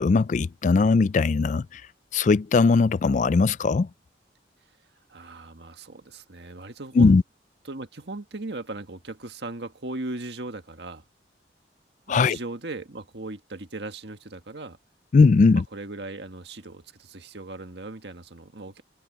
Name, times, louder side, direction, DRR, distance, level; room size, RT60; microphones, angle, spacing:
voice 1, 0.0-1.8 2.1-3.9 7.0-7.2 12.1-12.4 15.1-15.6, left 4 dB, 40° left, 0.3 m, -19 dB
voice 2, 5.1-7.2 7.6-11.0 12.1-14.8 15.7-18.8, right 2 dB, 65° right, 1.7 m, -38 dB
head